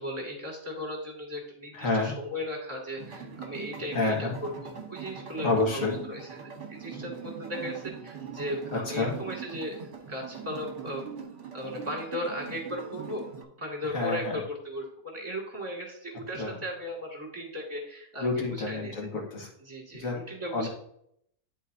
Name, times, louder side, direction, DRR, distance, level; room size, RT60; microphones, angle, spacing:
voice 1, 0.0-11.1 11.5-19.1 19.6-20.7, equal, 20° right, -2 dB, 2.4 m, -37 dB
voice 2, 1.7-2.1 3.9-4.4 5.4-6.0 8.9-9.1 13.9-14.4 16.3-16.6 18.2-19.5 19.9-20.2 20.5-20.7, left 3 dB, 55° left, 0 dB, 1.9 m, -28 dB
sound 1, 3.0-13.4, right 6 dB, 50° right, 1.3 m, -42 dB
11.0 x 4.1 x 2.7 m, 0.72 s
omnidirectional pair, 1.7 m